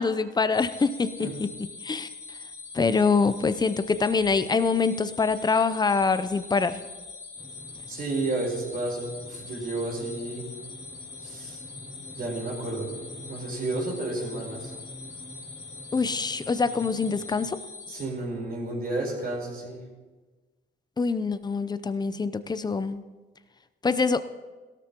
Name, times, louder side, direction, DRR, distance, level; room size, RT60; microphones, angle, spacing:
voice 1, 0.0-1.5 1.8-2.4 2.7-6.8 15.9-17.6 21.0-23.0 23.8-24.2, left 4 dB, 20° left, 12 dB, 0.6 m, -25 dB
sound 1, 0.5-18.0, left 4 dB, 75° left, 3.4 m, -43 dB
sound 2, 7.4-17.5, equal, 10° right, 2.7 m, -48 dB
voice 2, 7.9-10.5 11.2-11.6 12.1-12.9 13.2-14.7 17.9-19.8, right 2 dB, 50° right, -2 dB, 4.5 m, -31 dB
17.0 x 13.0 x 3.0 m, 1.3 s
cardioid pair, 90°, 20 cm